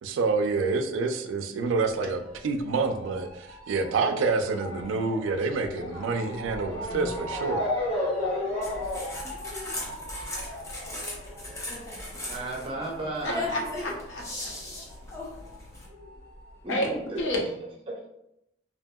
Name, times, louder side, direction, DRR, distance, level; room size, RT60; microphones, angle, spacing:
voice 1, 0.0-7.6, right 4 dB, 85° right, 0.3 m, -27 dB
Motor vehicle (road) / Siren, 1.9-14.9 15.2-16.4 17.0-17.1 17.3-17.4, left 1 dB, 45° left, 1.3 m, -35 dB
voice 2, 6.9-7.2 13.2-14.5 16.7-16.9 17.1-17.4, left 1 dB, 80° left, 0.7 m, -31 dB
sound 1, 8.6-15.9, left 1 dB, 15° left, 0.5 m, -38 dB
voice 3, 12.3-13.5 16.6-17.2 17.9-18.1, right 2 dB, 30° right, 0.6 m, -34 dB
2.7 x 2.6 x 2.2 m
head